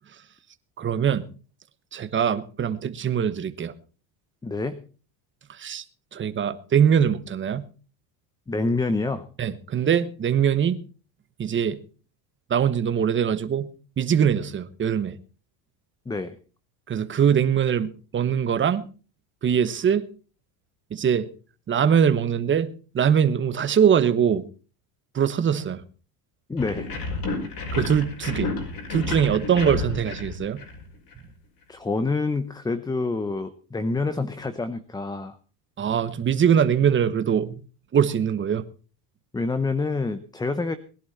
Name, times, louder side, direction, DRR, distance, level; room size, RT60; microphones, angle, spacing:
voice 1, 0.8-1.3 1.9-3.7 5.6-5.8 6.1-7.7 9.4-10.8 11.4-11.8 12.5-13.7 14.0-15.2 16.9-18.9 19.4-20.1 20.9-21.3 21.7-24.4 25.1-25.8 27.7-28.5 28.9-30.6 35.8-37.5 37.9-38.6, right 8 dB, 25° right, 1.2 m, -22 dB
voice 2, 4.4-4.8 8.5-9.3 16.1-16.4 26.5-27.0 31.7-35.4 39.3-40.8, left 3 dB, 10° left, 0.8 m, -27 dB
sound 1, 26.6-31.2, left 3 dB, 45° left, 5.6 m, -31 dB
20.5 x 11.0 x 4.2 m
supercardioid pair, 130°, 48 cm